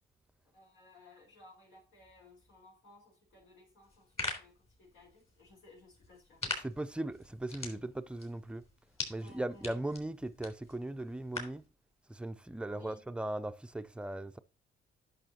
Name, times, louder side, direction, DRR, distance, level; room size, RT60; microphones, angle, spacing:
voice 1, 0.5-6.4 9.1-9.7 12.7-13.0, left 2 dB, 80° left, 4.8 m, -58 dB
sound 1, 3.8-11.7, left 3 dB, 30° left, 3.5 m, -44 dB
voice 2, 6.4-8.6 9.1-11.6 12.1-14.4, right 1 dB, 5° right, 0.5 m, -38 dB
11.0 x 6.2 x 2.9 m
cardioid pair, 90°, 20 cm